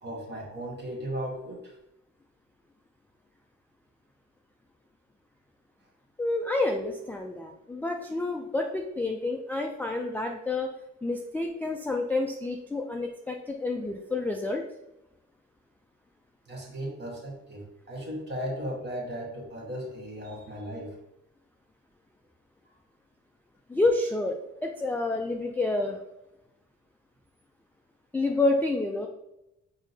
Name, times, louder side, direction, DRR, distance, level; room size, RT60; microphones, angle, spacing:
voice 1, 0.0-1.8 16.5-21.0, equal, 35° right, -1 dB, 1.4 m, -36 dB
voice 2, 6.2-10.7 11.0-14.6 23.7-24.3 24.6-26.0 28.1-29.1, left 2 dB, 5° left, 1 dB, 0.3 m, -29 dB
4.9 x 2.8 x 2.7 m, 0.87 s
cardioid pair, 90°, 30 cm